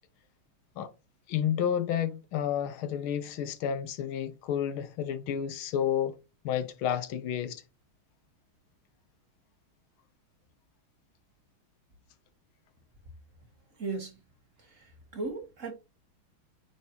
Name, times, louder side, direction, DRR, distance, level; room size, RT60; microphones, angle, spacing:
voice 1, 1.3-6.2 6.4-7.6, left 9 dB, 85° left, 1.7 m, -30 dB
voice 2, 13.8-14.1 15.1-15.7, right 3 dB, 45° right, 1.4 m, -35 dB
8.6 x 4.8 x 2.9 m
omnidirectional pair, 2.3 m